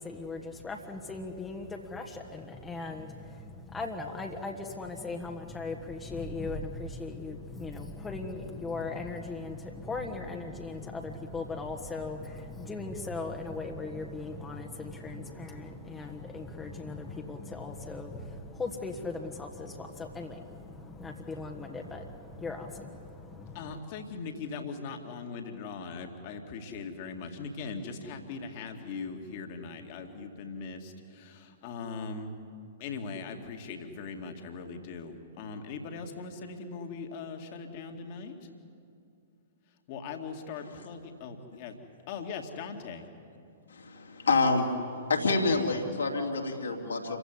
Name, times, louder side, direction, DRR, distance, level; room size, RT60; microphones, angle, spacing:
voice 1, 0.0-23.8, left 3 dB, 10° left, 2 dB, 1.5 m, -38 dB
voice 2, 23.5-32.4 32.8-38.4 39.9-41.8 42.1-43.0, left 4 dB, 40° left, 4 dB, 2.2 m, -40 dB
voice 3, 43.7-44.7 45.1-47.2, left 3 dB, 70° left, 0 dB, 2.9 m, -28 dB
28.0 x 16.0 x 9.7 m, 2.4 s
figure-of-eight pair, 110°, 0 cm